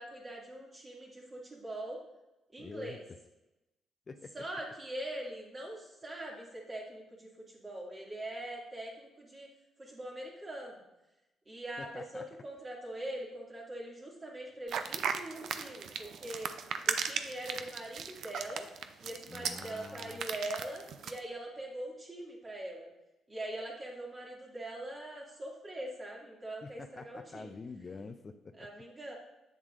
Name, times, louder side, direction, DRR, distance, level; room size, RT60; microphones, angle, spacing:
voice 1, 0.0-2.0 2.5-3.0 4.3-9.5 9.8-10.8 11.5-16.5 16.9-18.7 19.0-22.9 23.3-27.6 28.6-29.1, right 1 dB, 30° right, -3 dB, 2.2 m, -42 dB
voice 2, 2.6-3.0 4.1-4.3 11.8-12.3 19.3-20.2 26.6-28.7, left 4 dB, 35° left, 7 dB, 0.4 m, -46 dB
sound 1, 14.7-21.2, right 7 dB, 70° right, 0.5 m, -36 dB
8.1 x 7.3 x 2.5 m, 0.98 s
cardioid pair, 90°, 0 cm